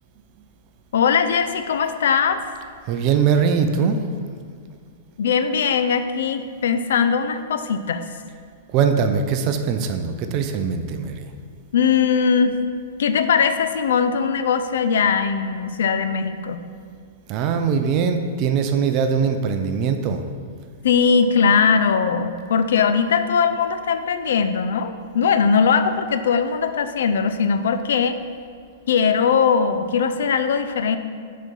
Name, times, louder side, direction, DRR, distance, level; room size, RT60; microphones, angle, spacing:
voice 1, 0.9-2.4 5.2-8.0 11.7-12.6 13.0-16.6 20.8-28.2 28.9-31.0, left 6 dB, 75° left, 10 dB, 0.5 m, -20 dB
voice 2, 2.9-4.0 8.7-11.3 17.3-20.2, right 6 dB, 40° right, 7 dB, 0.5 m, -21 dB
6.1 x 4.3 x 5.3 m, 2.2 s
hypercardioid pair, 135°, 0 cm